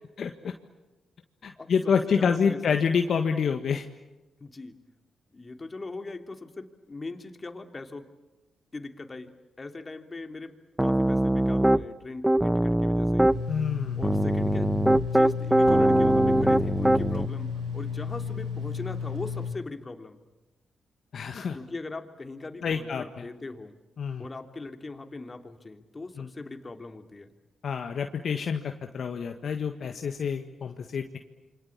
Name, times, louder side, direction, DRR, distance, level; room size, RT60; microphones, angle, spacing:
voice 1, 0.2-0.5 1.4-3.8 13.5-14.0 21.1-21.6 22.6-23.3 24.0-24.2 26.2-26.3 27.6-31.2, left 6 dB, 60° left, 5 dB, 1.6 m, -28 dB
voice 2, 2.1-2.8 4.4-4.8 5.3-8.0 8.7-9.3 9.6-10.5 10.8-13.3 13.6-14.7 15.1-20.2 21.5-23.8 24.2-27.3, left 3 dB, 35° left, 6 dB, 3.0 m, -40 dB
Piano, 10.8-11.8 12.2-13.4 14.0-17.3, right 1 dB, 10° right, 0.9 m, -22 dB
sound 1, 13.3-19.5, left 6 dB, 75° right, 2.8 m, -33 dB
28.0 x 24.5 x 8.7 m, 1.1 s
hypercardioid pair, 45°, 0 cm